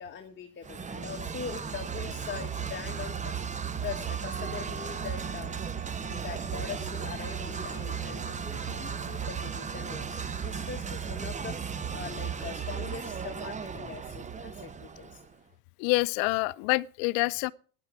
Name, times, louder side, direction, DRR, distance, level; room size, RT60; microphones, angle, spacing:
voice 1, 0.0-3.4 3.8-5.6 6.1-15.2, left 7 dB, 25° left, 1.4 m, -42 dB
sound 1, 0.6-15.3, right 6 dB, 15° right, 0.7 m, -35 dB
sound 2, 4.3-10.1, right 6 dB, 85° right, 2.1 m, -49 dB
voice 2, 15.8-17.5, left 23 dB, 65° left, 0.6 m, -27 dB
14.0 x 10.0 x 4.8 m
supercardioid pair, 100°, 45 cm